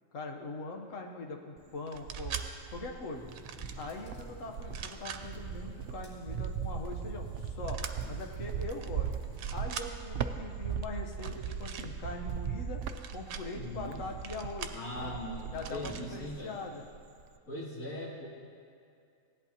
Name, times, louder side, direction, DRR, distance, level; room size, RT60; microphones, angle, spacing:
voice 1, 0.1-2.4 2.7-3.3 3.8-7.8 8.1-9.1 9.5-12.8 13.1-15.1 15.5-16.8, left 2 dB, 70° left, 2 dB, 1.4 m, -42 dB
Cricket, 1.6-3.1 3.6-16.5 16.8-17.4, right 7 dB, 65° right, 0.7 m, -38 dB
sound 1, 1.9-2.5 3.3-3.8 4.6-5.2 7.7-7.9 8.7-8.9 9.2-9.9 11.1-11.9 12.8-13.4 14.2-14.8 15.6-16.0, right 8 dB, 90° right, 1.1 m, -42 dB
sound 2, 3.1-9.5, right 1 dB, 20° left, 2.5 m, -51 dB
voice 2, 13.5-14.0 14.7-16.6 17.5-18.3, left 1 dB, 90° left, -8 dB, 3.2 m, -40 dB
16.5 x 11.0 x 2.9 m, 2.4 s
omnidirectional pair, 1.4 m